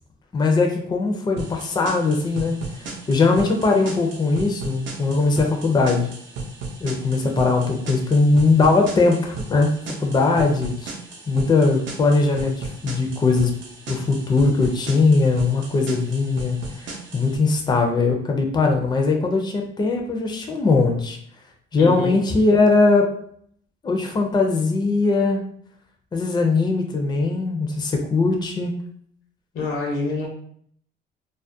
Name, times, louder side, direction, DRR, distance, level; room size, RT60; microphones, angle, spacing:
voice 1, 0.3-2.6 3.1-6.1 6.8-10.9 11.3-13.5 13.9-21.2 21.7-23.1 23.8-25.4 26.1-28.8, left 3 dB, 20° left, 2 dB, 0.4 m, -20 dB
sound 1, 1.4-17.4, right 3 dB, 70° right, 0.6 m, -36 dB
voice 2, 21.8-22.2 29.5-30.3, left 2 dB, 85° left, -1 dB, 0.8 m, -26 dB
2.3 x 2.1 x 2.6 m, 0.63 s
cardioid pair, 90°, 20 cm